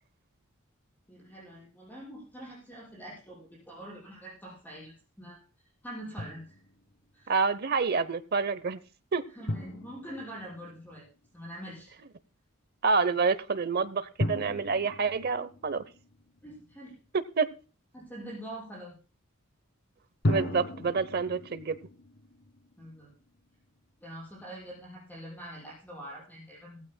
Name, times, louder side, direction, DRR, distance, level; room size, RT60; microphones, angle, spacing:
voice 1, 1.1-6.6 7.1-7.3 9.3-11.1 11.3-11.9 16.4-16.9 17.9-18.9 22.8-23.1 24.0-26.8, right 1 dB, 10° left, -6 dB, 6.1 m, -44 dB
Drum, 6.2-6.9 9.5-11.3 14.2-16.7 20.2-23.4, left 1 dB, 55° left, 1.3 m, -36 dB
voice 2, 7.3-8.8 9.1-9.2 12.8-15.8 17.4-17.5 20.3-21.8, right 4 dB, 50° right, 15 dB, 0.7 m, -28 dB
18.0 x 15.5 x 2.2 m, 0.35 s
head